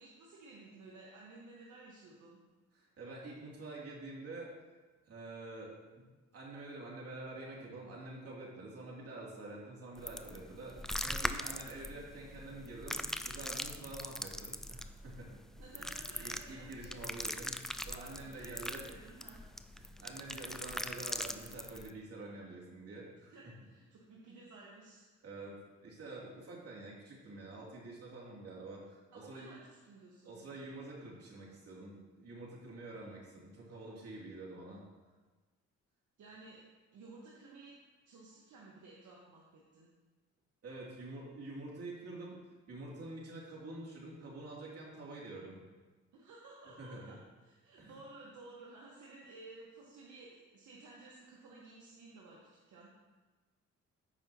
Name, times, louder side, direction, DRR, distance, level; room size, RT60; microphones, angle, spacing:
voice 1, 0.0-2.4 15.5-17.0 17.9-19.4 23.3-25.2 29.1-30.4 36.2-36.7 36.9-37.7 38.0-39.9 46.1-52.4 52.7-52.9, right 3 dB, 70° right, -4 dB, 1.5 m, -55 dB
voice 2, 2.7-4.5 5.1-6.0 6.3-10.8 11.0-15.4 15.8-18.8 19.7-23.3 25.2-29.5 30.2-34.8 40.6-42.4 42.7-45.6 46.8-47.1 47.8-48.0, right 2 dB, 55° right, -4 dB, 2.9 m, -47 dB
sound 1, 10.0-21.9, left 1 dB, ahead, 0.3 m, -41 dB
14.5 x 5.2 x 3.0 m, 1.3 s
cardioid pair, 90°, 30 cm